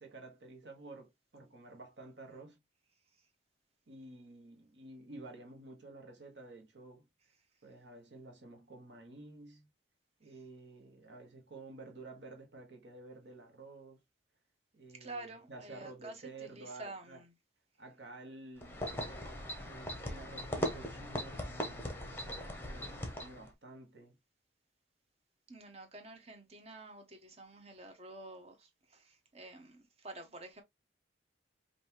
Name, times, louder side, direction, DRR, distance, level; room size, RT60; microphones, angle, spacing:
voice 1, 0.0-2.6 3.9-7.1 7.6-9.7 10.2-14.0 14.7-17.2 17.8-18.9 19.6-22.1 22.6-24.2, right 2 dB, 60° right, 1.3 m, -51 dB
voice 2, 15.0-16.1 16.6-17.1 25.5-30.6, right 2 dB, 30° right, 0.9 m, -49 dB
sound 1, 18.6-23.5, equal, 10° left, 0.9 m, -39 dB
5.4 x 2.7 x 2.8 m
head